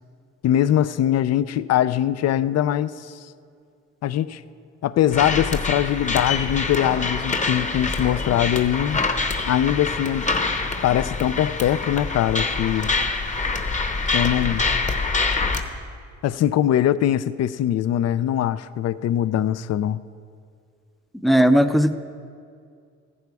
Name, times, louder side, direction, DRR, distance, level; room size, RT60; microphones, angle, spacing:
voice 1, 0.4-3.1 4.0-4.4 4.8-9.0 9.5-10.3 10.8-12.9 14.1-14.7 16.2-20.0, left 11 dB, 55° left, 16 dB, 0.5 m, -22 dB
sound 1, 5.1-15.6, left 3 dB, 25° left, 1.0 m, -25 dB
voice 2, 21.2-21.9, equal, ahead, 10 dB, 0.5 m, -16 dB
15.0 x 11.5 x 4.8 m, 2.2 s
cardioid pair, 90°, 30 cm